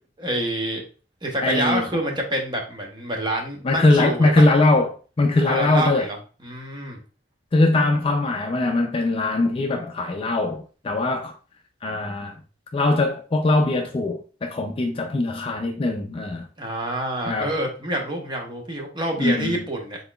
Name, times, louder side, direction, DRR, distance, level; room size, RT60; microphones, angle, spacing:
voice 1, 0.2-0.8 1.2-4.5 5.4-6.2 6.4-7.0 16.6-20.0, right 1 dB, 25° right, 0.9 m, -27 dB
voice 2, 1.4-1.8 3.6-6.1 7.5-11.4 11.8-12.4 12.7-16.5 17.3-17.5 19.2-19.6, left 2 dB, 30° left, 0.4 m, -21 dB
4.0 x 3.7 x 2.2 m
head